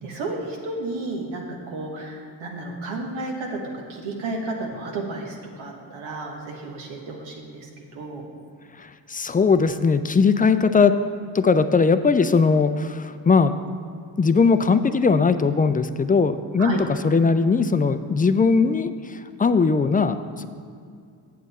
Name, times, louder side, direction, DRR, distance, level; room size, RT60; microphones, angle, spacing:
voice 1, 0.0-3.6 3.9-8.2 16.6-16.8, right 2 dB, 85° right, 1 dB, 1.3 m, -32 dB
voice 2, 8.8-10.9 11.3-13.6 14.2-20.5, left 5 dB, 20° left, 11 dB, 0.4 m, -19 dB
8.0 x 7.5 x 4.2 m, 2.3 s
supercardioid pair, 50°, 46 cm